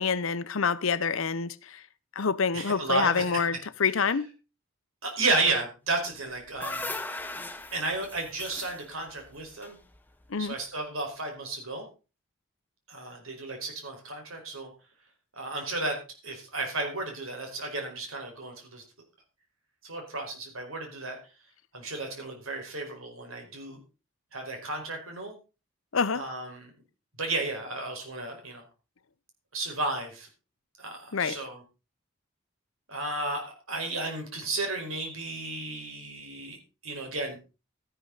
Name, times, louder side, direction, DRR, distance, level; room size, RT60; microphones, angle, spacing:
voice 1, 0.0-1.8 2.2-4.3 10.3-10.5 25.9-26.2 31.1-31.4, left 5 dB, 75° left, 0.7 m, -27 dB
voice 2, 2.5-3.4 3.9-4.0 5.0-6.9 7.7-9.8 10.4-11.9 12.9-14.7 15.4-16.0 16.2-18.8 19.8-21.2 21.7-23.8 24.3-25.4 26.1-26.7 27.2-28.6 29.5-30.3 30.8-31.6 32.9-37.4, right 2 dB, 80° right, 4.7 m, -33 dB
sound 1, 6.1-10.4, left 2 dB, 10° left, 0.9 m, -39 dB
13.0 x 11.5 x 4.0 m
head